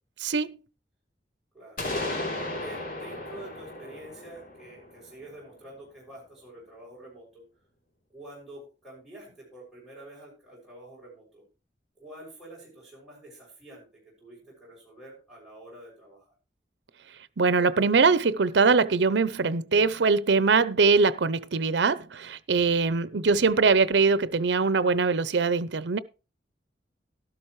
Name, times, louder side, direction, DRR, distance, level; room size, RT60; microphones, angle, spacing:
voice 1, 0.2-0.6 17.4-26.0, right 4 dB, 75° right, 0.6 m, -22 dB
voice 2, 1.5-7.4 8.1-11.4 12.0-16.3, right 1 dB, 5° right, 6.6 m, -47 dB
sound 1, 1.8-5.6, left 2 dB, 50° left, 3.2 m, -35 dB
12.5 x 12.0 x 3.2 m
head